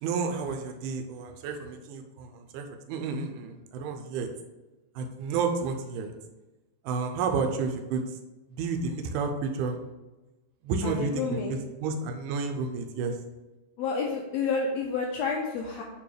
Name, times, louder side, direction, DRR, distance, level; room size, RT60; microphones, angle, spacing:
voice 1, 0.0-4.3 5.0-6.1 6.8-8.0 8.5-9.8 10.6-13.2, right 5 dB, 85° right, 4 dB, 2.2 m, -31 dB
voice 2, 10.8-11.5 13.8-15.8, left 5 dB, 80° left, -1 dB, 1.6 m, -29 dB
8.3 x 3.4 x 3.3 m, 1.1 s
omnidirectional pair, 3.6 m